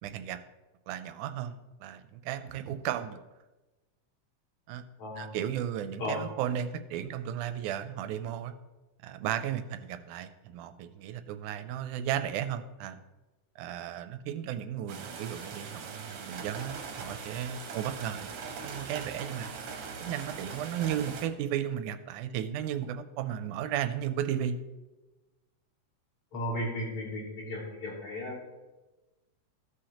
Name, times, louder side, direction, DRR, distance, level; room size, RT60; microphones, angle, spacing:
voice 1, 0.0-0.4 0.9-3.2 4.7-4.8 5.2-8.5 9.0-13.0 13.6-18.3 18.6-19.5 20.0-24.6, right 10 dB, 90° right, 10 dB, 2.1 m, -34 dB
voice 2, 5.0-5.3 6.0-6.2 26.3-28.4, left 1 dB, 65° left, -4 dB, 4.0 m, -35 dB
sound 1, 14.9-21.3, right 5 dB, 60° right, 1.6 m, -41 dB
15.0 x 6.4 x 2.9 m, 1.1 s
omnidirectional pair, 3.5 m